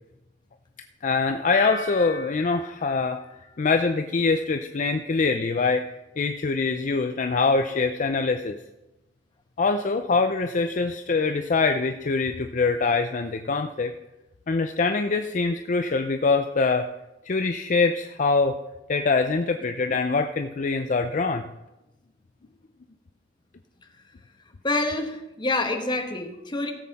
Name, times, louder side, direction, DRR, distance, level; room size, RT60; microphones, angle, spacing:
voice 1, 1.0-3.2 3.6-5.9 6.2-8.6 9.6-13.9 14.5-16.9 17.2-18.6 18.9-21.4, left 4 dB, 45° left, 7 dB, 0.5 m, -24 dB
sound 1, 1.5-4.4 4.7-5.2, left 3 dB, 90° left, 1.6 m, -39 dB
voice 2, 24.6-26.7, left 2 dB, 25° left, 4 dB, 1.3 m, -27 dB
16.5 x 7.6 x 4.1 m, 0.97 s
head